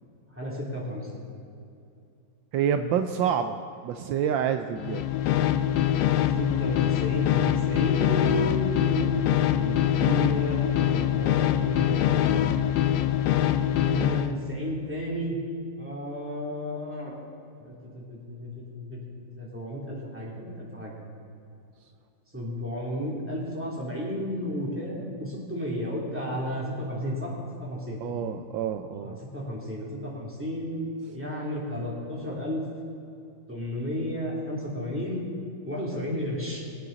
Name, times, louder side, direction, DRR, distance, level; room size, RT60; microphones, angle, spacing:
voice 1, 0.3-1.3 6.3-9.2 9.6-12.5 13.8-15.4 15.8-17.1 17.6-20.9 22.3-27.3 27.6-28.0 29.0-30.9 31.1-32.6 33.5-35.2 35.7-36.6, equal, 5° right, -5 dB, 2.7 m, -33 dB
voice 2, 2.5-3.6 3.8-5.0 28.0-29.2 31.1-31.2, right 8 dB, 75° right, 7 dB, 1.3 m, -27 dB
sound 1, 4.8-14.3, left 11 dB, 75° left, 1.2 m, -24 dB
21.0 x 8.6 x 4.0 m, 2.6 s
omnidirectional pair, 2.1 m